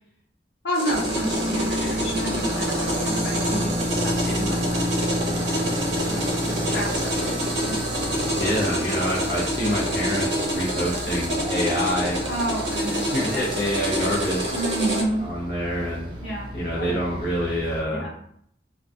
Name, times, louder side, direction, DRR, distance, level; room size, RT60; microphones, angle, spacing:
voice 1, 0.6-4.9 6.0-7.4 7.6-7.9 12.2-13.5 14.5-15.2 16.2-16.5 16.7-16.9 17.9-18.1, right 1 dB, 85° left, -5 dB, 1.0 m, -30 dB
sound 1, 0.7-15.0, equal, 80° right, 0.6 m, -27 dB
sound 2, 0.9-17.8, equal, 25° right, 0.4 m, -31 dB
voice 2, 8.4-12.2 13.1-14.5 15.2-16.1 16.5-18.1, equal, 55° left, -7 dB, 0.6 m, -26 dB
2.3 x 2.2 x 2.5 m, 0.66 s
head